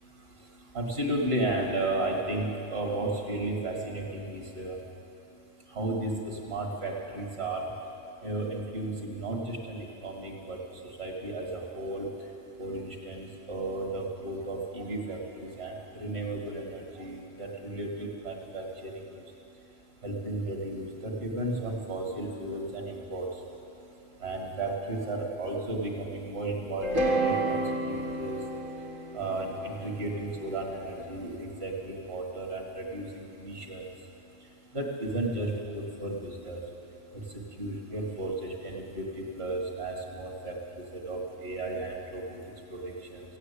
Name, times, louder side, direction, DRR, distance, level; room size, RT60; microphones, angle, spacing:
voice 1, 0.7-4.8 5.7-6.1 6.4-7.6 8.2-10.6 11.0-12.0 12.6-15.2 15.6-18.9 20.0-23.3 24.2-27.6 27.9-28.4 29.1-33.8 34.7-36.6 37.6-38.3 38.6-40.6 40.9-42.4 42.7-43.2, right 2 dB, 50° right, 0 dB, 2.2 m, -34 dB
sound 1, 26.8-31.0, right 2 dB, 85° right, 2.5 m, -30 dB
15.5 x 9.1 x 8.3 m, 2.8 s
omnidirectional pair, 1.3 m